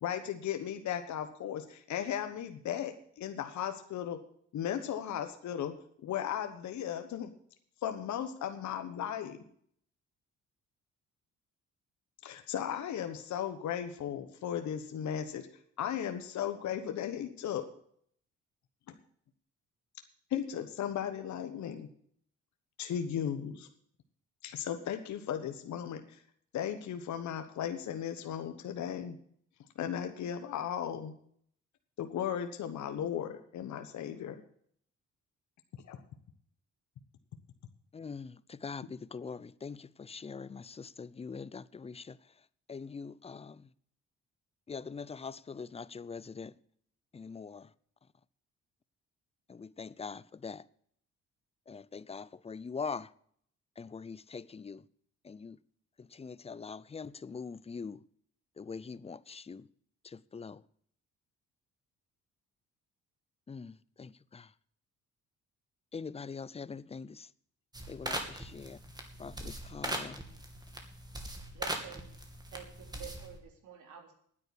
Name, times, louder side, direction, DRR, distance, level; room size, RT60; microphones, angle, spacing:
voice 1, 0.0-4.2 4.5-5.7 6.0-7.3 7.8-9.4 12.2-15.5 15.8-17.7 20.3-21.9 22.8-23.7 24.4-26.2 26.5-29.2 29.8-31.1 32.0-34.4 35.9-36.0, left 9 dB, 70° left, 1.3 m, -36 dB
voice 2, 37.9-42.2 42.7-43.7 44.7-46.5 47.1-47.7 49.5-50.6 51.7-53.1 53.8-54.8 55.2-55.6 56.0-58.0 58.6-59.7 60.0-60.6 63.5-64.5 65.9-67.3 67.9-68.8 69.2-70.2, left 5 dB, 20° left, 0.5 m, -43 dB
sound 1, 67.7-73.4, right 1 dB, 15° right, 2.6 m, -40 dB
voice 3, 71.5-72.0 72.5-74.1, right 9 dB, 75° right, 3.7 m, -49 dB
10.0 x 9.0 x 8.3 m
cardioid pair, 90°, 30 cm